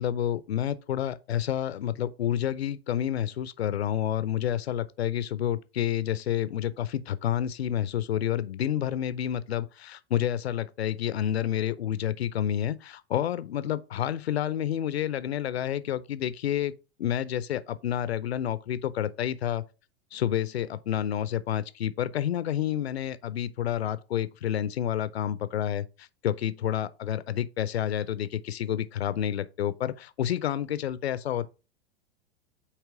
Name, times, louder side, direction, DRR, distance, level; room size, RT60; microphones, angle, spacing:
voice 1, 0.0-16.7 17.0-19.6 20.1-31.5, left 10 dB, 80° left, 0.5 m, -29 dB
8.2 x 3.0 x 4.6 m
hypercardioid pair, 95°, 31 cm